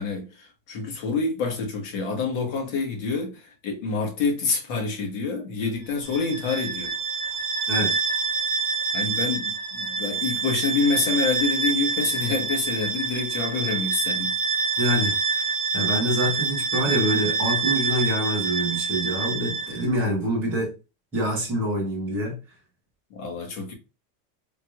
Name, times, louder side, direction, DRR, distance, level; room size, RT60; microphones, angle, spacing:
voice 1, 0.0-6.9 8.9-14.3 23.1-23.7, left 4 dB, 55° left, 1.5 m, -27 dB
Bowed string instrument, 6.0-19.9, right 4 dB, 30° right, 1.3 m, -26 dB
voice 2, 7.7-8.0 14.8-20.7 21.1-22.4, equal, 5° right, 0.3 m, -26 dB
3.8 x 3.0 x 2.4 m
supercardioid pair, 180°, 49 cm